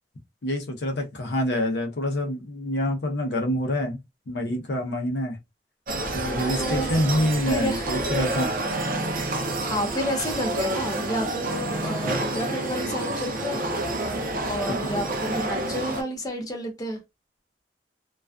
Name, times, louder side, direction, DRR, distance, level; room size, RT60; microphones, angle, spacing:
voice 1, 0.4-4.0 4.3-5.4 6.1-8.5 14.8-15.0, left 1 dB, 70° left, 0.6 m, -26 dB
sound 1, 5.9-16.0, right 2 dB, 50° right, 0.5 m, -29 dB
voice 2, 6.6-6.9 7.5-8.0 9.6-13.7 14.4-17.0, equal, 20° left, 0.6 m, -30 dB
sound 2, 8.6-9.9 11.4-12.7, right 1 dB, 80° right, 0.9 m, -34 dB
2.4 x 2.3 x 2.2 m
head